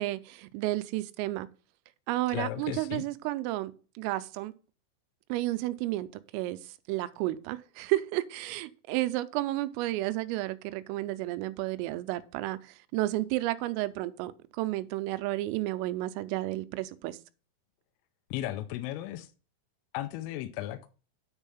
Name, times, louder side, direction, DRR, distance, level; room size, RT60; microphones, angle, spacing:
voice 1, 0.0-1.5 2.1-4.5 5.3-6.1 6.3-6.6 6.9-14.3 14.6-17.2, right 17 dB, 85° right, 3.1 m, -32 dB
voice 2, 2.3-3.1 18.3-19.3 19.9-20.9, left 14 dB, 85° left, 3.2 m, -35 dB
9.6 x 4.5 x 5.6 m
omnidirectional pair, 6.0 m